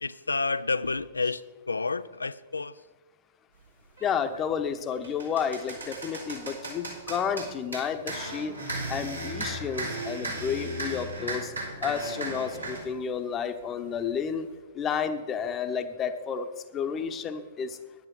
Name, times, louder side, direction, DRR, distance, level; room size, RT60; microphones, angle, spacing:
voice 1, 0.0-2.8 10.7-10.8, left 3 dB, 75° left, 0.4 m, -30 dB
voice 2, 4.0-8.6 8.9-11.5 11.8-14.5 14.7-16.5 16.7-17.8, left 7 dB, 25° left, 0.9 m, -31 dB
sound 1, 4.0-4.2 4.7-12.9, right 2 dB, 85° right, 3.4 m, -36 dB
10.5 x 9.4 x 6.0 m
figure-of-eight pair, 105°, 0 cm